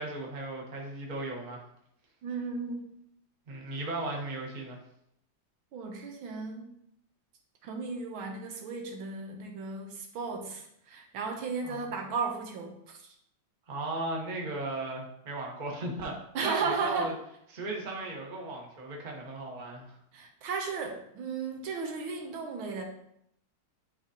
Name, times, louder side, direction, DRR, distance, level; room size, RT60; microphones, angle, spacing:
voice 1, 0.0-1.6 3.5-4.8 11.6-12.0 13.7-16.1 16.4-17.1 17.5-19.9, right 2 dB, 30° right, -1 dB, 1.0 m, -36 dB
voice 2, 2.2-2.9 5.7-6.8 7.6-13.1 16.3-17.1 20.1-22.8, right 4 dB, 75° right, 3 dB, 1.6 m, -35 dB
10.0 x 3.9 x 2.8 m, 0.74 s
omnidirectional pair, 2.3 m